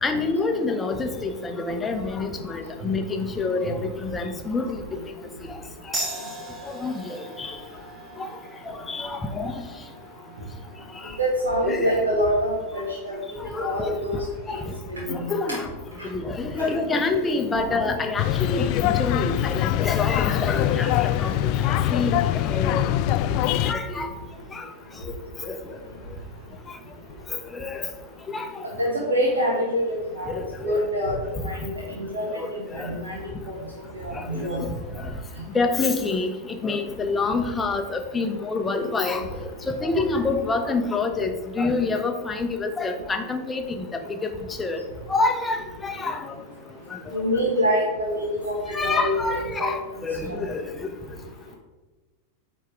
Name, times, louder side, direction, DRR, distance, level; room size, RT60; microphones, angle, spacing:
voice 1, 0.0-4.8 5.5-5.6 5.9-6.0 6.7-7.6 8.2-8.3 8.6-9.6 10.9-11.1 11.6-12.1 13.4-14.0 14.5-14.7 15.1-15.7 16.1-21.3 21.6-22.8 23.3-24.1 24.5-24.7 25.0-25.1 25.4-25.6 27.3-27.9 28.3-28.6 30.3-30.8 31.3-31.5 32.4-33.0 34.1-34.7 35.0-35.1 35.5-44.3 44.6-44.8 45.1-46.4 46.9-47.0 48.7-50.9, left 3 dB, 15° left, 5 dB, 0.8 m, -27 dB
sound 1, 5.9-13.0, right 1 dB, 15° right, 1.7 m, -39 dB
voice 2, 11.2-13.2 13.6-14.2 14.9-15.3 16.6-16.7 28.8-30.3 30.6-31.1 31.4-31.7 32.1-32.4 32.7-33.1 33.5-33.6 33.9-34.7 47.1-48.5 48.8-49.8 50.3-50.4, equal, 70° right, -4 dB, 1.5 m, -25 dB
sound 2, 18.2-23.7, left 12 dB, 45° left, 0.3 m, -23 dB
9.1 x 3.6 x 4.7 m, 1.2 s
figure-of-eight pair, 90°, 0 cm